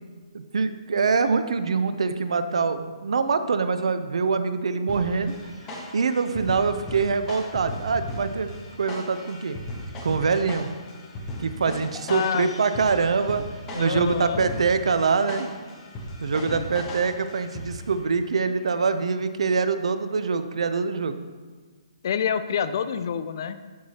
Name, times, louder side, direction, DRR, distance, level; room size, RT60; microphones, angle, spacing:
voice 1, 0.3-5.3 5.9-9.6 10.0-10.7 11.4-13.4 13.8-15.5 16.2-21.2, right 5 dB, 70° right, 10 dB, 0.5 m, -24 dB
sound 1, 4.9-18.0, left 1 dB, 15° left, 0.9 m, -37 dB
voice 2, 12.1-12.5 13.7-14.5 16.4-16.7 22.0-23.6, left 7 dB, 40° left, 12 dB, 0.3 m, -27 dB
13.0 x 4.7 x 2.8 m, 1.4 s
hypercardioid pair, 170°, 3 cm